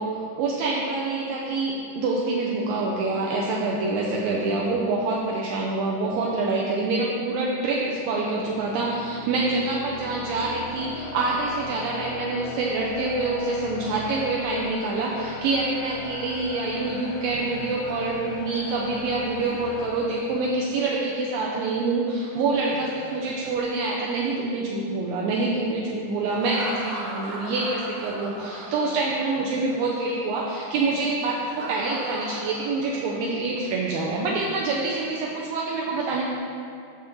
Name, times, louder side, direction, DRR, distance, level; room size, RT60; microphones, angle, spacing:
voice 1, 0.0-36.2, right 3 dB, 80° right, -3 dB, 2.3 m, -26 dB
sound 1, 8.0-20.9, left 5 dB, 80° left, 2.0 m, -40 dB
Laughter, 16.7-20.8 22.4-24.6 26.3-29.3 29.6-29.8 31.2-33.4, right 1 dB, 55° right, 2.4 m, -39 dB
9.3 x 6.6 x 4.1 m, 2.4 s
omnidirectional pair, 4.3 m